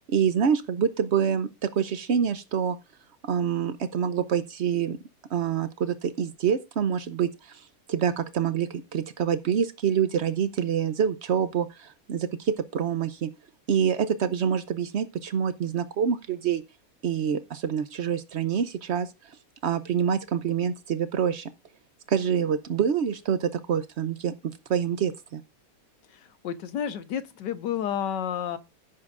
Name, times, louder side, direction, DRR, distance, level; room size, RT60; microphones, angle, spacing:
voice 1, 0.0-2.8 3.2-5.0 5.3-13.3 13.7-16.6 17.0-19.1 19.6-21.5 22.1-24.3 24.7-25.4, right 8 dB, 85° right, 0.6 m, -26 dB
voice 2, 26.1-28.6, left 9 dB, 70° left, 1.6 m, -31 dB
15.5 x 8.7 x 2.5 m
omnidirectional pair, 2.1 m